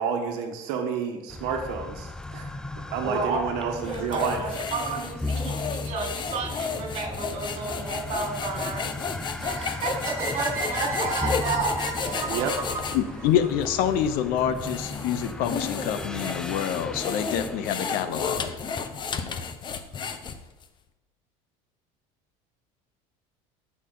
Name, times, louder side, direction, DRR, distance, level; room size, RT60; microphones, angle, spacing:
voice 1, 0.0-2.5 2.9-4.4 12.3-12.5, right 6 dB, 75° right, 4 dB, 1.4 m, -30 dB
sound 1, 1.3-19.2, left 2 dB, 5° left, 0.3 m, -37 dB
voice 2, 3.0-3.4 3.7-8.9 9.4-12.5, right 3 dB, 40° right, -1 dB, 3.8 m, -31 dB
sound 2, 3.8-13.0 13.6-13.7 14.4-20.6, left 6 dB, 30° left, 0.8 m, -33 dB
sound 3, 10.0-14.1, right 3 dB, 15° right, 2.2 m, -34 dB
voice 3, 12.9-18.5, left 9 dB, 65° left, 11 dB, 0.9 m, -26 dB
14.0 x 6.4 x 4.0 m, 1.0 s
cardioid pair, 135°, 16 cm